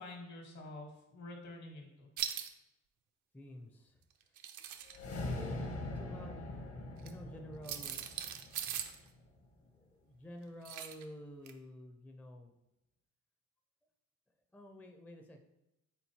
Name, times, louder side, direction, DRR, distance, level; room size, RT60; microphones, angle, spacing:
voice 1, 0.0-2.1 5.2-5.6, left 2 dB, 65° left, 2 dB, 1.3 m, -48 dB
sound 1, 2.2-2.5 4.2-5.0 7.0-7.1 7.6-9.0 10.7-11.0 11.5-11.6, right 9 dB, 75° right, 0.5 m, -40 dB
voice 2, 3.3-4.0 5.3-6.6 7.0-8.1 9.6-12.5 14.5-15.4, equal, 5° left, 4 dB, 0.4 m, -50 dB
sound 2, 4.9-9.3, left 2 dB, 50° left, 0.8 m, -42 dB
4.4 x 3.8 x 2.8 m, 0.89 s
cardioid pair, 90°, 30 cm